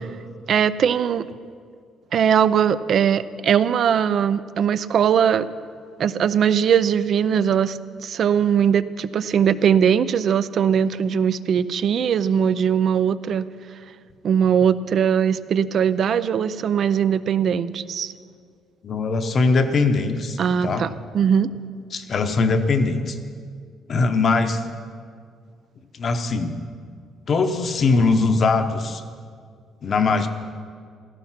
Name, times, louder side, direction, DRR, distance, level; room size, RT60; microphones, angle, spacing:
voice 1, 0.5-1.3 2.1-5.5 6.0-13.5 14.2-18.1 20.4-20.9 21.1-21.5, right 8 dB, 40° right, 15 dB, 0.5 m, -20 dB
voice 2, 18.8-20.9 21.9-23.2 23.9-24.6 25.9-26.6 27.3-29.0 29.8-30.3, left 3 dB, 35° left, 8 dB, 0.9 m, -21 dB
15.5 x 14.5 x 5.8 m, 2.1 s
cardioid pair, 175°, 0 cm